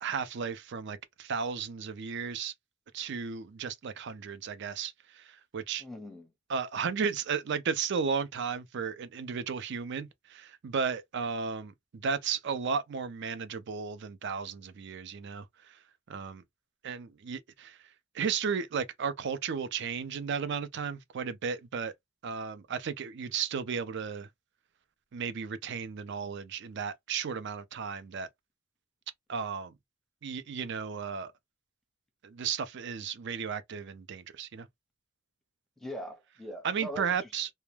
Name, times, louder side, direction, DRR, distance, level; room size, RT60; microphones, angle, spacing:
voice 1, 0.0-2.5 2.9-5.8 6.5-15.8 16.1-16.4 16.8-17.8 18.1-21.9 22.2-24.3 25.1-28.3 29.3-29.7 30.2-31.3 32.2-34.7 36.6-37.5, right 6 dB, 60° right, 0.4 m, -34 dB
voice 2, 5.8-6.3 35.8-37.3, equal, ahead, 0.6 m, -41 dB
2.2 x 2.1 x 3.1 m
head